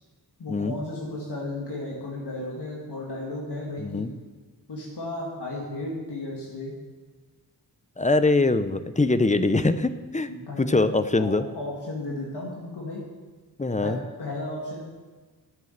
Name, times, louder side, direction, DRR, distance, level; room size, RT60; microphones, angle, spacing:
voice 1, 0.4-4.0 4.7-6.7 10.3-10.9 11.2-13.0 13.8-14.8, left 2 dB, 85° left, -4 dB, 2.2 m, -34 dB
voice 2, 8.0-10.3 10.6-11.4 13.6-14.0, left 2 dB, 20° left, 11 dB, 0.6 m, -23 dB
11.0 x 7.6 x 8.0 m, 1.3 s
wide cardioid pair, 90°, 39 cm